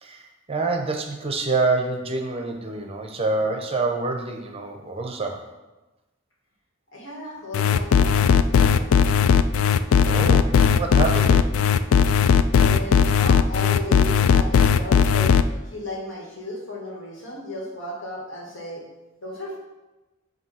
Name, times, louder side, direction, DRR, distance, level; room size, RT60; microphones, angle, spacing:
voice 1, 0.0-5.5 10.1-11.5, right 3 dB, 30° right, 3 dB, 0.6 m, -26 dB
voice 2, 6.9-9.2 12.5-15.4 15.6-18.8 19.2-19.6, left 1 dB, 65° left, -2 dB, 1.7 m, -35 dB
sound 1, 7.5-15.4, left 7 dB, 85° left, 0.3 m, -17 dB
8.0 x 2.7 x 5.5 m, 1.1 s
head